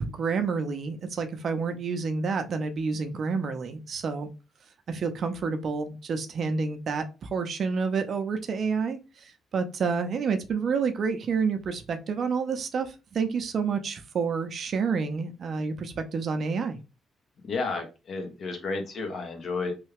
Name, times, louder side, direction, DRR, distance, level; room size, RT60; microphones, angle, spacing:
voice 1, 0.0-4.3 4.9-16.8, right 5 dB, 55° right, 7 dB, 0.5 m, -29 dB
voice 2, 17.4-19.7, left 3 dB, 55° left, 4 dB, 1.0 m, -32 dB
3.2 x 2.3 x 3.3 m, 0.30 s
cardioid pair, 90°, 0 cm